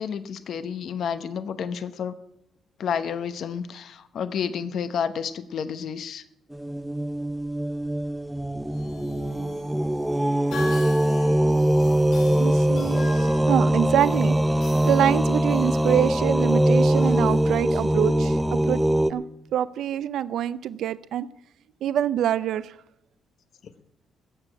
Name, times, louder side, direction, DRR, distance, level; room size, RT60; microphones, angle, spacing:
voice 1, 0.0-2.1 2.8-6.2, left 7 dB, 65° left, 0.8 m, -30 dB
sound 1, 6.5-19.1, right 1 dB, 5° right, 0.5 m, -22 dB
sound 2, 8.6-18.1, left 2 dB, 85° left, 6.6 m, -42 dB
voice 2, 12.4-18.8 19.1-19.2 19.5-21.3 21.8-22.7, right 10 dB, 75° right, 0.4 m, -25 dB
15.5 x 7.0 x 8.8 m
cardioid pair, 90°, 0 cm